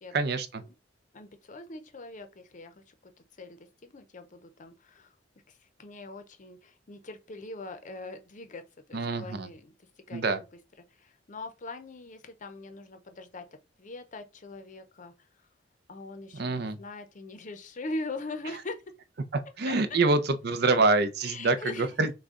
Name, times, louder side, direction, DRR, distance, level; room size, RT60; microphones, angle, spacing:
voice 1, 0.1-0.6 8.9-9.5 10.1-10.4 16.3-16.8 19.3-22.1, right 3 dB, 60° right, 0.6 m, -26 dB
voice 2, 1.1-2.9 3.4-5.1 5.5-8.6 8.9-10.4 10.9-13.5 13.8-15.1 15.9-18.8 19.6-20.0 21.2-21.9, left 2 dB, 45° left, 0.7 m, -42 dB
6.3 x 2.2 x 3.7 m
head